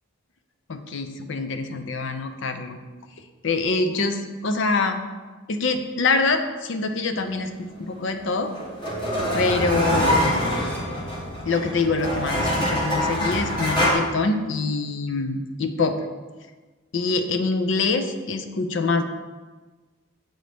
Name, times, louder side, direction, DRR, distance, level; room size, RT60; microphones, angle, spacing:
voice 1, 0.7-2.8 3.4-5.0 5.5-7.5 7.8-8.5 9.3-10.4 11.5-16.0 16.9-19.1, left 3 dB, 55° left, 7 dB, 0.5 m, -25 dB
sound 1, 8.0-13.9, equal, 20° left, 1.0 m, -25 dB
7.6 x 3.9 x 3.4 m, 1.3 s
head